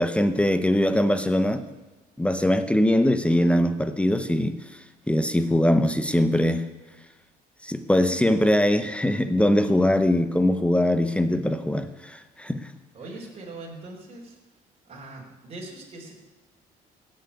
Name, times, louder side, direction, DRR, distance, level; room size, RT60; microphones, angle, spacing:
voice 1, 0.0-1.6 2.2-4.6 5.1-6.7 7.6-12.6, left 1 dB, 5° left, 10 dB, 0.9 m, -22 dB
voice 2, 9.5-9.9 12.9-14.4 14.8-16.1, right 2 dB, 35° right, -2 dB, 4.2 m, -41 dB
16.5 x 7.9 x 8.5 m, 1.2 s
cardioid pair, 110°, 17 cm